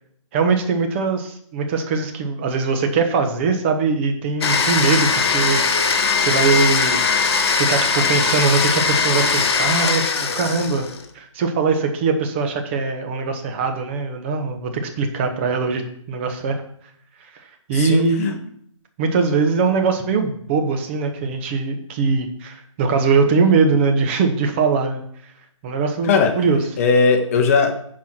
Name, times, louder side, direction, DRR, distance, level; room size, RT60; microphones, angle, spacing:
voice 1, 0.3-5.9 6.2-7.0 7.6-10.9 11.1-16.6 17.3-18.5 19.0-25.0 25.6-26.6, right 4 dB, 20° right, 5 dB, 1.0 m, -21 dB
Domestic sounds home sounds, 4.4-11.1, left 5 dB, 50° left, 1.3 m, -20 dB
voice 2, 17.7-18.3 26.0-26.4 26.8-27.7, left 4 dB, 25° left, 6 dB, 1.1 m, -18 dB
10.5 x 4.7 x 6.0 m, 0.67 s
hypercardioid pair, 160°, 17 cm